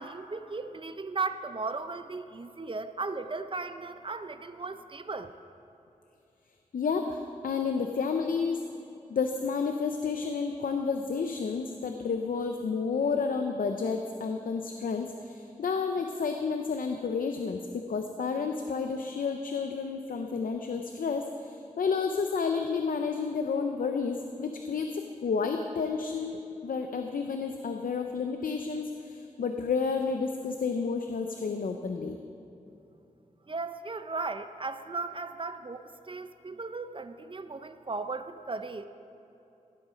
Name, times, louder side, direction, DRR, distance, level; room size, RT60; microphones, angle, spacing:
voice 1, 0.0-5.4 33.5-38.8, right 3 dB, 40° right, 10 dB, 0.5 m, -36 dB
voice 2, 6.7-8.6 9.1-32.2, left 5 dB, 85° left, 5 dB, 0.6 m, -31 dB
16.0 x 8.0 x 5.1 m, 2.8 s
wide cardioid pair, 75°, 14 cm